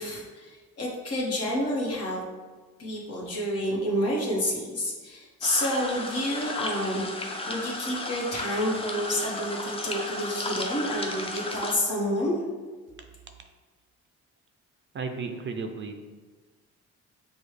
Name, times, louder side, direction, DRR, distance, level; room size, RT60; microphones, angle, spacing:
voice 1, 0.0-2.2 2.8-12.3, equal, 55° left, -3 dB, 1.3 m, -29 dB
sound 1, 5.4-11.8, left 2 dB, 20° left, 0.5 m, -34 dB
voice 2, 14.9-16.0, right 4 dB, 40° right, 5 dB, 0.4 m, -34 dB
6.1 x 2.3 x 3.2 m, 1.3 s
cardioid pair, 90°, 30 cm